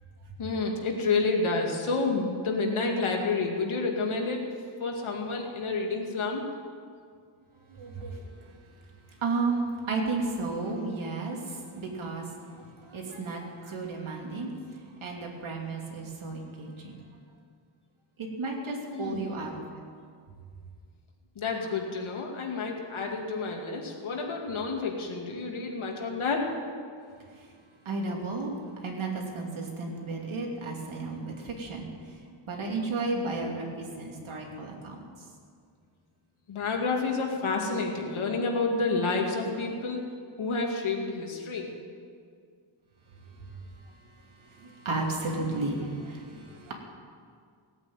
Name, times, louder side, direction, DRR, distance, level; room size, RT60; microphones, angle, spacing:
voice 1, 0.4-4.4 4.8-6.4 18.9-19.3 21.4-26.5 36.5-40.1 40.4-41.8, left 3 dB, 70° left, 1 dB, 2.5 m, -29 dB
voice 2, 7.7-8.2 9.2-12.2 12.6-14.5 15.0-17.0 18.2-19.5 27.8-31.9 32.5-35.0 44.5-46.7, right 3 dB, 70° right, 0 dB, 3.0 m, -33 dB
17.0 x 8.8 x 8.9 m, 2.1 s
wide cardioid pair, 160°, 50 cm